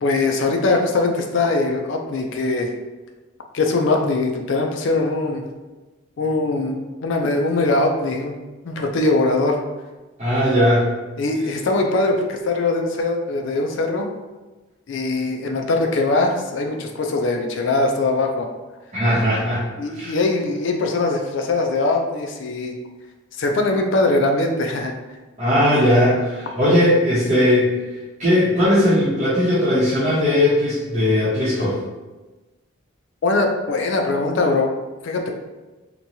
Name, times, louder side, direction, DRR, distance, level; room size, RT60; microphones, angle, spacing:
voice 1, 0.0-2.7 3.5-5.5 6.2-8.3 8.7-9.6 11.2-14.1 14.9-18.5 19.8-22.8 23.4-24.9 33.2-34.7 35.0-35.3, left 2 dB, 55° left, 3 dB, 0.3 m, -21 dB
voice 2, 10.2-10.9 18.9-19.6 19.9-20.1 25.4-27.7 28.2-31.8, left 1 dB, 35° right, -13 dB, 0.8 m, -18 dB
2.9 x 2.2 x 2.6 m, 1.2 s
head